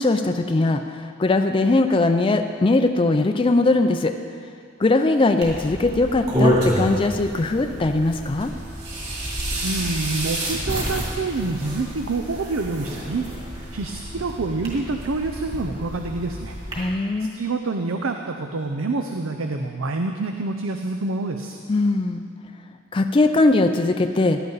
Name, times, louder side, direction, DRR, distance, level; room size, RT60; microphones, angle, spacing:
voice 1, 0.0-4.1 4.8-8.5 16.8-17.3 21.7-22.2 22.9-24.4, left 2 dB, 25° left, 6 dB, 0.4 m, -20 dB
sound 1, 5.4-16.8, equal, 30° right, 2.8 m, -28 dB
voice 2, 9.6-13.3 13.7-16.6 17.2-21.6, right 3 dB, 85° right, 5 dB, 0.6 m, -27 dB
16.0 x 11.0 x 4.0 m, 2.3 s
head